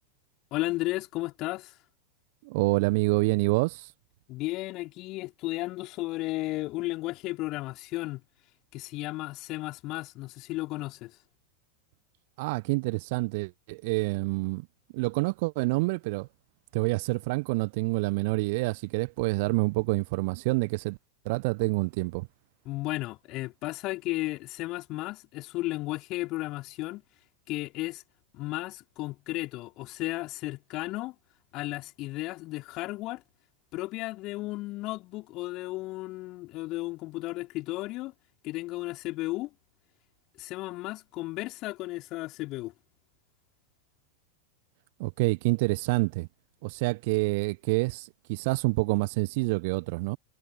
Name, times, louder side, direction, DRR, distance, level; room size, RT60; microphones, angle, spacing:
voice 1, 0.5-1.8 4.3-8.2 8.7-11.2 22.6-27.0 27.5-28.0 28.3-31.1 31.5-33.2 33.7-38.1 38.4-39.5 40.4-42.7, left 19 dB, 40° left, 4.6 m, -34 dB
voice 2, 2.4-3.9 12.4-14.7 14.9-16.3 16.7-21.0 21.2-22.3 45.0-46.3 46.6-50.2, right 25 dB, 50° right, 1.1 m, -27 dB
figure-of-eight pair, 90°, 0 cm